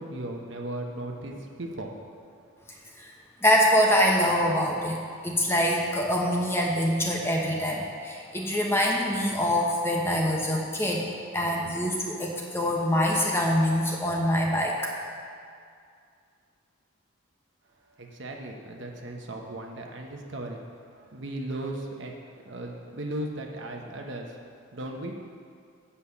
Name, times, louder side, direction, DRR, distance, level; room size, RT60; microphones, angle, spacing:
voice 1, 0.0-2.9 17.8-22.2 22.4-25.1, right 1 dB, 60° right, 1 dB, 1.0 m, -37 dB
voice 2, 3.4-5.0 5.2-11.1 11.3-14.9, equal, 10° left, -1 dB, 0.9 m, -24 dB
8.4 x 5.6 x 7.0 m, 2.3 s
head